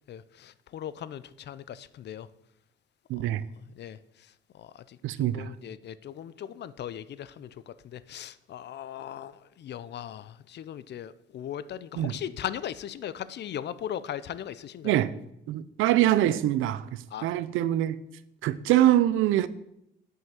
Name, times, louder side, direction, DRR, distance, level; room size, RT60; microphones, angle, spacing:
voice 1, 0.1-2.3 3.2-3.3 3.8-4.0 4.5-15.0 17.1-17.3, left 10 dB, 60° left, 0.5 m, -39 dB
voice 2, 3.1-3.4 5.0-5.5 12.0-12.2 14.8-15.1 15.5-18.0 18.4-19.5, right 13 dB, 90° right, 0.5 m, -24 dB
7.6 x 5.5 x 7.2 m
cardioid pair, 90°, 20 cm